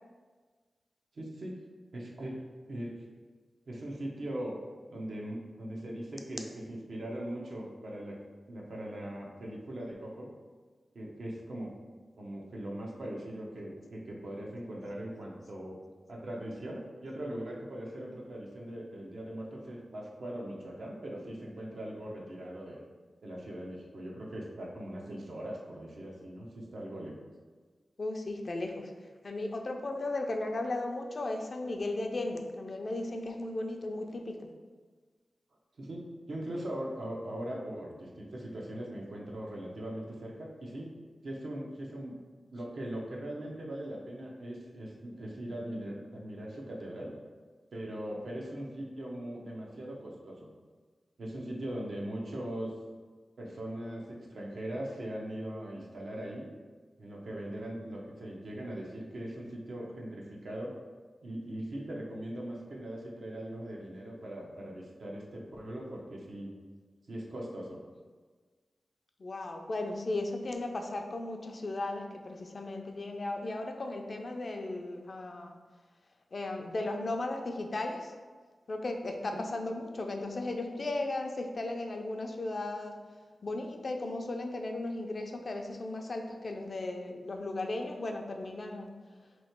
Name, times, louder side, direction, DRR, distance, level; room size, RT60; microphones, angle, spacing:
voice 1, 1.1-1.6 1.9-2.4 2.7-2.9 3.7-4.5 4.9-8.2 8.5-10.3 10.9-11.7 12.2-15.8 16.1-22.8 23.2-27.1 35.8-40.9 41.2-42.1 42.5-47.2 47.7-50.5 51.2-52.7 53.4-56.5 57.0-60.7 61.2-66.5 67.1-67.8 79.2-79.4, right 1 dB, 75° right, -3 dB, 0.8 m, -40 dB
voice 2, 28.0-28.9 29.2-34.4 69.2-75.6 76.3-78.1 78.7-83.0 83.4-88.9, left 2 dB, 60° left, 3 dB, 0.5 m, -36 dB
3.0 x 2.8 x 4.4 m, 1.4 s
cardioid pair, 55°, 0 cm